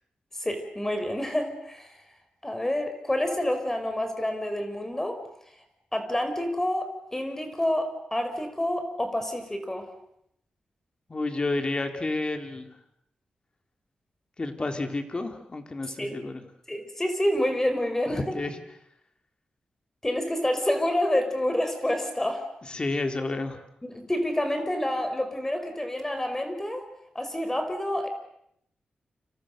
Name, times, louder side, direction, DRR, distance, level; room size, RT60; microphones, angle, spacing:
voice 1, 0.4-1.9 2.4-5.2 5.9-9.9 16.0-16.1 16.7-18.4 20.0-22.5 23.8-26.9 27.2-28.1, left 1 dB, 15° left, 7 dB, 5.3 m, -28 dB
voice 2, 11.1-12.7 14.4-16.4 18.1-18.6 22.7-23.6, left 2 dB, 35° left, 6 dB, 3.6 m, -30 dB
30.0 x 27.5 x 6.7 m, 0.74 s
cardioid pair, 90°, 3 cm